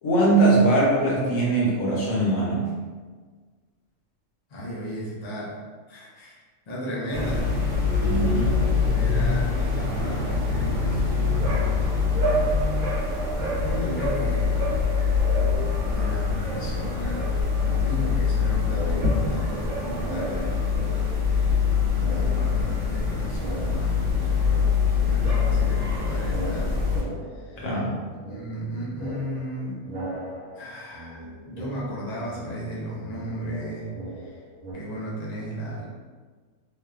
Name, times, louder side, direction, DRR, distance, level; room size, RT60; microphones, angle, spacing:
voice 1, 0.0-2.7 8.0-8.7 27.6-27.9, right 2 dB, 75° left, -5 dB, 1.2 m, -21 dB
voice 2, 4.5-7.5 8.8-11.9 13.4-14.6 15.9-17.3 17.6-20.7 21.3-26.9 27.3-27.7 28.1-29.8 30.6-34.4 34.7-35.9, right 1 dB, 60° left, -5 dB, 0.4 m, -35 dB
sound 1, 7.1-27.0, left 5 dB, 40° right, 1.1 m, -24 dB
sound 2, 15.3-16.2 16.4-18.3 18.6-21.7 21.9-24.5 24.8-34.7, right 1 dB, 80° right, 1.0 m, -39 dB
2.8 x 2.2 x 2.3 m, 1.5 s
omnidirectional pair, 1.4 m